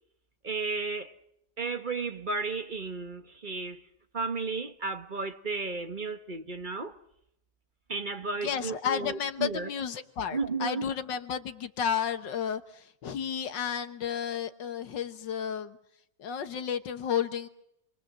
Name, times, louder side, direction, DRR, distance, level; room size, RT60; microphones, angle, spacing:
voice 1, 0.4-1.1 1.6-3.8 4.1-7.0 7.9-9.7 10.3-10.9, right 4 dB, 30° right, 1.1 m, -33 dB
voice 2, 8.4-15.8 16.2-17.5, left 8 dB, 60° left, 1.8 m, -32 dB
27.5 x 23.0 x 7.5 m
omnidirectional pair, 2.3 m